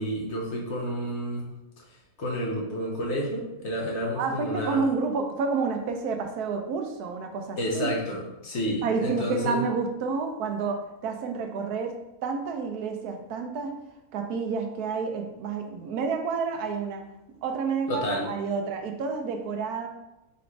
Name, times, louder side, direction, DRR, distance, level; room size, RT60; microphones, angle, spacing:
voice 1, 0.0-1.4 2.2-4.8 7.6-9.6 17.9-18.3, equal, 55° left, -2 dB, 1.0 m, -30 dB
voice 2, 4.2-7.9 8.8-12.0 12.2-13.8 14.1-17.0 17.4-19.9, right 5 dB, 85° right, 4 dB, 1.1 m, -29 dB
4.0 x 2.6 x 4.4 m, 0.92 s
omnidirectional pair, 1.6 m